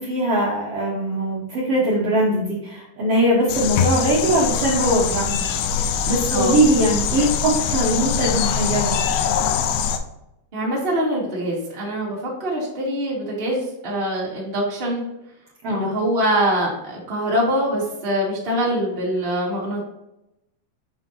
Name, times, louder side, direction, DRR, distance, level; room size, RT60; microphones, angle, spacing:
voice 1, 0.0-5.4 5.7-8.9 15.6-15.9, right 1 dB, 85° right, -6 dB, 1.3 m, -21 dB
sound 1, 3.5-10.0, left 7 dB, 80° left, 2.3 m, -23 dB
voice 2, 10.5-15.0 15.7-19.8, equal, 30° right, -5 dB, 1.0 m, -24 dB
6.9 x 5.4 x 2.9 m, 0.86 s
omnidirectional pair, 4.8 m